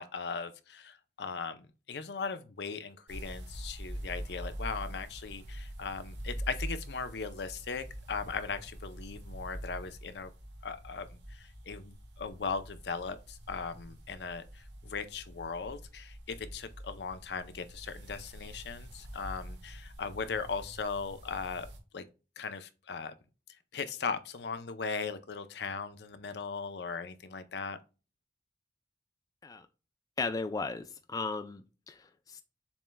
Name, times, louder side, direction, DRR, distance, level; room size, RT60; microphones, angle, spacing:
voice 1, 0.0-10.3 10.6-21.7 21.9-22.1 22.4-23.1 23.7-27.8, left 5 dB, 70° left, 0.5 m, -38 dB
sound 1, 3.1-21.8, equal, 85° right, 1.1 m, -45 dB
voice 2, 30.2-32.4, left 3 dB, 20° left, 0.3 m, -36 dB
7.1 x 3.2 x 2.2 m
head